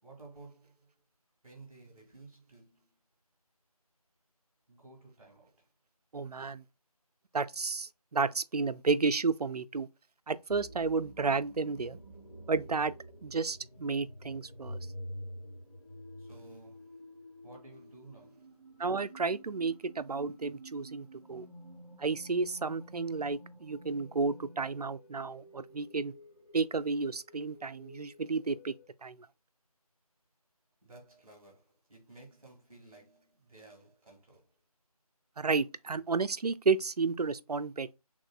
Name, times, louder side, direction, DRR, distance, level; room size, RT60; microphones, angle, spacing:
voice 1, 0.0-1.0 1.4-3.0 4.7-5.7 16.2-18.6 30.8-34.6, right 3 dB, 5° right, 1.3 m, -55 dB
voice 2, 6.1-6.6 7.3-9.9 10.3-12.0 12.5-12.9 13.2-14.8 18.8-21.5 22.0-26.1 26.5-28.7 29.0-29.2 35.4-37.9, right 4 dB, 80° right, 0.5 m, -32 dB
sound 1, 10.5-28.9, equal, 20° left, 1.7 m, -49 dB
5.0 x 3.6 x 2.2 m
figure-of-eight pair, 170°, 20 cm